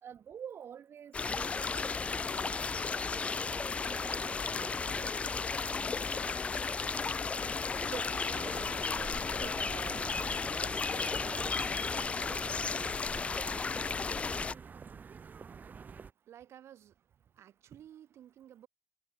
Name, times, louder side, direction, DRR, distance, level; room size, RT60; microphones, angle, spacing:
voice 1, 0.0-2.8 3.1-6.5 7.8-10.0 10.5-12.4, right 8 dB, 65° right, 4.8 m, -50 dB
sound 1, 1.1-14.5, left 4 dB, 30° left, 0.3 m, -34 dB
Bowed string instrument, 6.6-11.7, left 7 dB, 55° left, 6.9 m, -49 dB
sound 2, 8.3-16.1, right 6 dB, 40° right, 1.9 m, -48 dB
voice 2, 16.3-16.9 17.4-18.7, right 11 dB, 90° right, 3.9 m, -53 dB
wide cardioid pair, 130°, 4 cm